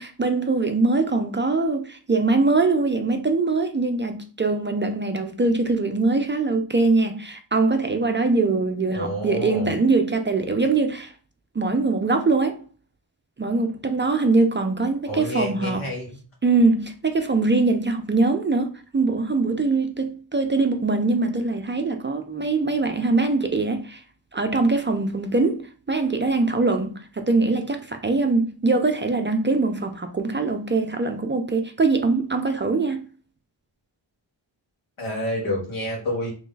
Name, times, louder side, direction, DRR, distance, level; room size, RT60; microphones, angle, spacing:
voice 1, 0.0-11.1 11.6-12.6 13.4-15.9 16.4-24.0 24.3-33.0, right 3 dB, 25° right, 0.4 m, -22 dB
voice 2, 8.9-9.7 15.1-16.2 35.0-36.3, left 1 dB, 85° left, 1.6 m, -28 dB
3.2 x 2.6 x 3.7 m
wide cardioid pair, 105°, 47 cm